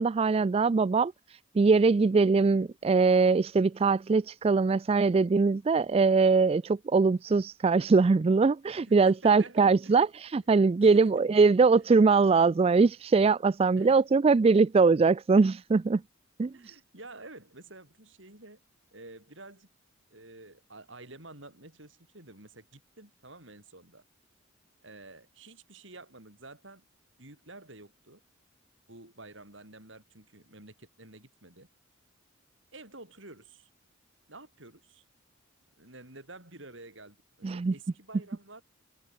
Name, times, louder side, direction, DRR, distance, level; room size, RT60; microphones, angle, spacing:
voice 1, 0.0-16.0 16.4-16.8 37.4-37.7, right 4 dB, 30° right, 0.3 m, -22 dB
voice 2, 8.7-10.1 10.8-11.2 13.8-14.0 16.5-18.6 18.9-19.7 20.1-24.0 24.8-26.8 27.2-28.2 28.9-31.7 32.7-33.7 34.3-35.0 35.8-38.6, right 2 dB, 65° right, 7.3 m, -50 dB
head